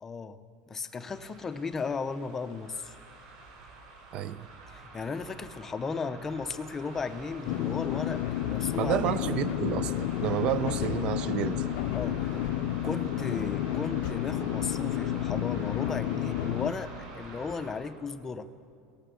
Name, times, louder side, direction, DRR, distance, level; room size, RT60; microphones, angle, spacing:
voice 1, 0.0-0.4 0.7-2.9 4.7-9.0 11.9-12.4 12.8-18.5, left 4 dB, 15° left, 10 dB, 0.7 m, -35 dB
sound 1, 0.9-17.9, right 3 dB, 60° right, 6.5 m, -47 dB
voice 2, 4.1-4.5 8.8-11.7, right 11 dB, 35° right, 15 dB, 0.6 m, -30 dB
sound 2, 7.5-16.7, left 12 dB, 50° left, 0.6 m, -31 dB
22.5 x 18.5 x 7.0 m, 2.5 s
cardioid pair, 175°, 3 cm